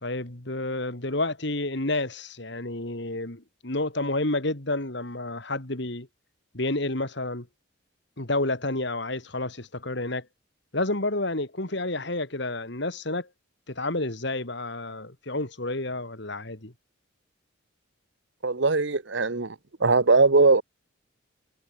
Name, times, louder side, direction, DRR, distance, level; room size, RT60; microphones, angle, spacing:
voice 1, 0.0-6.1 6.5-7.5 8.2-10.3 10.7-13.3 13.7-16.7, left 2 dB, 55° left, 2.4 m, -30 dB
voice 2, 18.4-19.5 19.8-20.6, right 3 dB, 60° right, 1.0 m, -20 dB
head